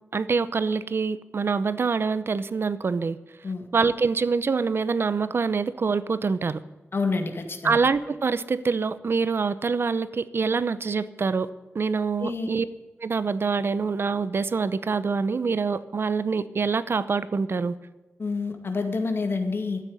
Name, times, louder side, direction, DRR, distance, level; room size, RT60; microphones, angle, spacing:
voice 1, 0.1-3.2 3.7-6.6 7.6-11.5 11.7-12.7 13.0-17.8, right 5 dB, 60° right, 15 dB, 0.7 m, -25 dB
voice 2, 6.9-7.8 12.2-12.5 18.2-19.8, left 4 dB, 60° left, 6 dB, 2.1 m, -28 dB
13.0 x 9.2 x 9.6 m, 1.1 s
wide cardioid pair, 100°, 5 cm